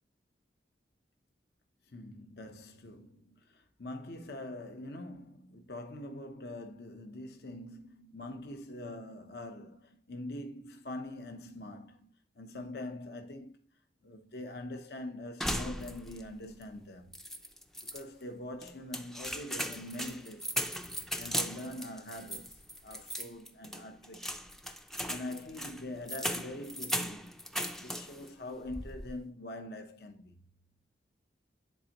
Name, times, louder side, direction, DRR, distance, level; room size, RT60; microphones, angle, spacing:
voice 1, 1.9-13.6 14.0-17.1 17.8-20.6 21.2-24.4 25.1-27.4 27.8-30.3, left 1 dB, 60° left, 0.8 m, -44 dB
sound 1, 15.4-16.3 16.6-16.7 17.1-18.0 18.6-28.3 28.7-29.2, equal, ahead, 0.4 m, -38 dB
10.5 x 4.4 x 2.9 m
head